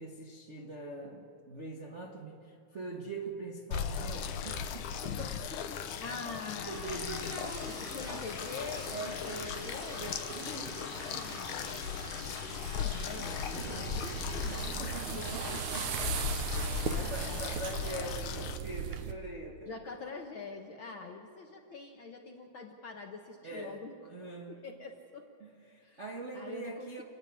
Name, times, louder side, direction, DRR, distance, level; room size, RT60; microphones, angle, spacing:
voice 1, 0.0-5.9 6.7-8.2 8.8-11.5 12.5-12.7 13.1-14.0 14.4-16.4 16.9-19.8 23.4-23.8 24.1-24.6 25.4-27.0, right 2 dB, 45° right, -2 dB, 0.9 m, -44 dB
sound 1, 3.7-18.6, left 8 dB, 90° left, 2.4 m, -38 dB
voice 2, 6.0-7.4 7.7-8.9 9.2-10.1 10.9-11.8 12.7-15.6 16.8-17.4 19.7-23.9 24.5-25.3 25.8-26.0 26.3-27.0, left 4 dB, 60° left, 3 dB, 1.4 m, -45 dB
Liquid, 6.5-14.7, right 2 dB, 30° right, 1.9 m, -46 dB
sound 2, 13.6-19.1, right 9 dB, 80° right, 2.3 m, -37 dB
29.0 x 10.0 x 9.6 m, 2.4 s
omnidirectional pair, 3.4 m